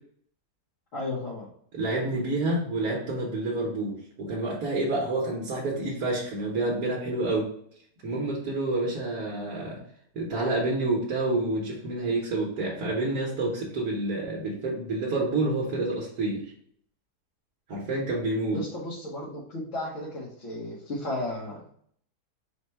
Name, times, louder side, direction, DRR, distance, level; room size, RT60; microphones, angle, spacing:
voice 1, 0.9-1.5 18.5-21.7, left 1 dB, 55° left, -6 dB, 1.2 m, -34 dB
voice 2, 1.7-7.5 8.0-9.8 10.1-16.5 17.7-18.6, right 2 dB, 70° right, -4 dB, 1.5 m, -28 dB
4.4 x 2.2 x 4.4 m, 0.63 s
omnidirectional pair, 1.7 m